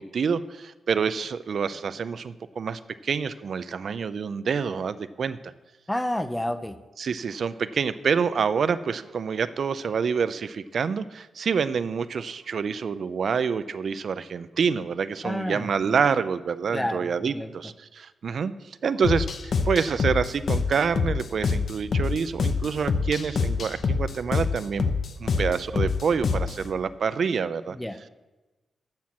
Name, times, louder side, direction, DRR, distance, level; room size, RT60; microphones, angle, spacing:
voice 1, 0.0-5.5 7.0-18.5 18.8-24.9 25.2-27.8, right 6 dB, 55° right, 14 dB, 0.4 m, -27 dB
voice 2, 5.9-6.8 15.2-16.0 16.7-17.5 27.7-28.1, left 1 dB, 5° left, 12 dB, 0.5 m, -30 dB
sound 1, 19.0-26.6, left 4 dB, 55° left, 0.7 m, -26 dB
13.0 x 4.4 x 7.5 m, 1.2 s
wide cardioid pair, 135°, 0 cm